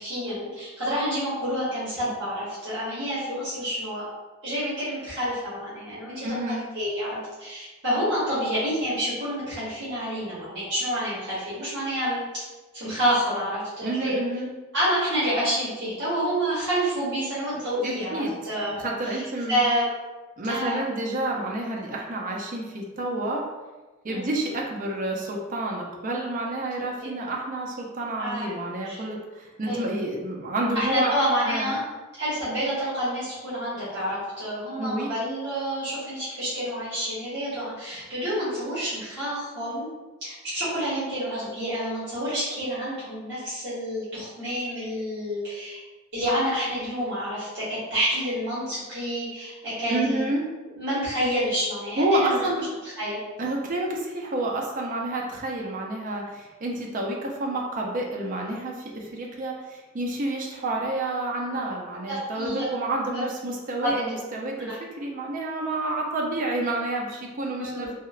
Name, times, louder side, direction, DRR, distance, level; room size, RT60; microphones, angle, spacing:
voice 1, 0.0-4.0 4.4-12.2 12.7-14.1 14.7-18.8 19.0-19.9 20.4-20.8 24.1-24.3 27.0-27.1 28.2-28.5 28.8-28.9 29.6-29.8 30.7-31.8 32.2-39.9 40.2-45.8 46.1-50.3 50.8-52.5 52.8-53.2 62.1-62.6 63.1-63.2 63.8-63.9 64.5-64.7 67.6-67.9, equal, 55° right, -10 dB, 0.9 m, -28 dB
voice 2, 6.2-6.7 13.8-14.5 17.8-18.3 18.8-19.6 20.4-23.4 24.0-31.2 31.5-31.8 34.8-35.1 49.9-50.4 52.0-52.6 53.4-68.0, right 2 dB, 40° right, 0 dB, 0.4 m, -29 dB
2.9 x 2.0 x 2.3 m, 1.2 s
head